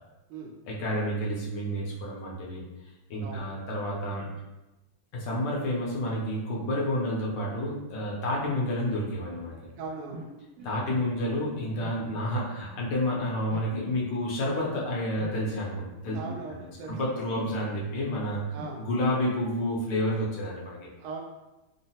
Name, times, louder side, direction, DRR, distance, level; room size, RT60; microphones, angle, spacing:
voice 1, 0.7-2.6 3.1-4.3 5.1-9.6 10.6-16.2 16.5-16.6 16.9-18.4 18.8-20.9, left 1 dB, 70° left, -4 dB, 1.2 m, -30 dB
sound 1, 9.3-13.7 14.4-20.0, equal, 65° right, 1.8 m, -46 dB
voice 2, 9.8-10.3 16.1-17.0 18.5-18.9 21.0-21.2, right 4 dB, 85° right, 2 dB, 1.4 m, -39 dB
3.7 x 2.0 x 2.7 m, 1.0 s
omnidirectional pair, 2.2 m